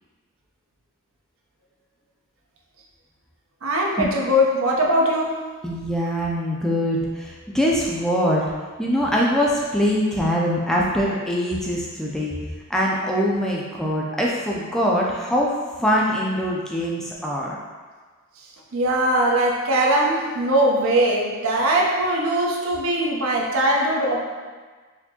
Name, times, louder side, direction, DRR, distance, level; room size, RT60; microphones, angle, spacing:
voice 1, 3.6-5.4 18.7-24.2, right 1 dB, 70° right, -1 dB, 0.6 m, -21 dB
voice 2, 5.6-8.5 8.8-12.4 12.7-17.6, equal, ahead, -4 dB, 0.3 m, -23 dB
4.2 x 2.6 x 2.8 m, 1.4 s
head